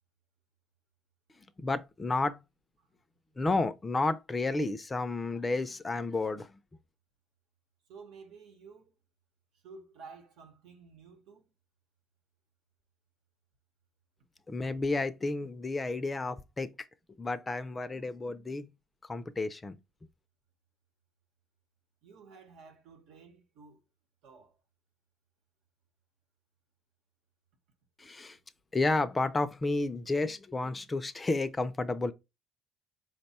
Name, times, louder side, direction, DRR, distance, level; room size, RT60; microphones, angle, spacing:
voice 1, 1.6-2.4 3.4-6.6 14.5-16.7 17.2-18.7 19.1-19.8 28.0-28.4 28.7-32.1, left 3 dB, 20° left, 0.4 m, -31 dB
voice 2, 7.9-8.9 9.6-11.5 22.0-23.8 24.2-24.6, right 4 dB, 80° right, 1.1 m, -52 dB
4.6 x 2.2 x 4.2 m
cardioid pair, 115°, 0 cm